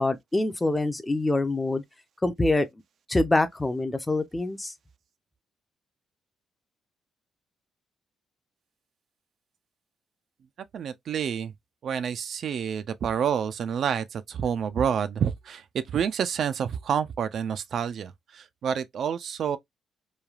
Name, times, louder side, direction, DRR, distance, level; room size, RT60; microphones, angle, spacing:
voice 1, 0.0-1.8 2.2-2.7 3.1-4.7, left 2 dB, 15° left, 0.5 m, -25 dB
voice 2, 10.7-11.5 11.8-19.6, right 8 dB, 60° right, 0.3 m, -28 dB
3.1 x 2.3 x 2.3 m
cardioid pair, 90°, 0 cm